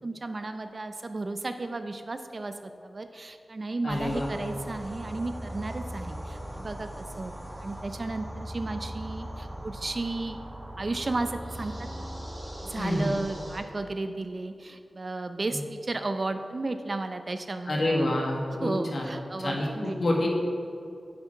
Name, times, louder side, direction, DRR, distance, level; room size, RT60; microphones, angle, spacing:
voice 1, 0.0-7.3 7.6-10.4 10.8-12.1 12.6-18.1 18.6-20.3, right 2 dB, 45° right, 8 dB, 0.6 m, -34 dB
voice 2, 3.8-4.3 12.8-13.1 17.7-19.1 19.4-20.3, left 1 dB, 65° left, -1 dB, 1.9 m, -27 dB
sound 1, 3.9-13.6, equal, 5° right, 1.9 m, -39 dB
9.5 x 8.5 x 4.6 m, 2.5 s
wide cardioid pair, 100°, 0 cm